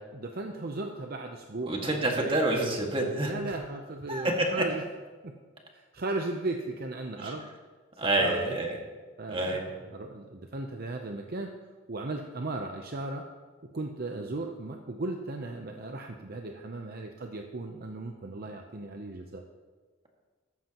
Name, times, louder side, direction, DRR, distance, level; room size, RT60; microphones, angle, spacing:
voice 1, 0.1-2.4 3.2-4.8 5.2-5.4 5.7-7.5 8.0-8.6 9.2-11.5 11.9-13.3 13.6-19.4, right 2 dB, 50° right, 3 dB, 0.7 m, -36 dB
voice 2, 1.7-3.3 4.1-4.5 7.2-7.3 8.0-8.8 9.3-9.7, right 1 dB, 30° right, 0 dB, 1.9 m, -28 dB
15.0 x 13.5 x 3.0 m, 1.4 s
head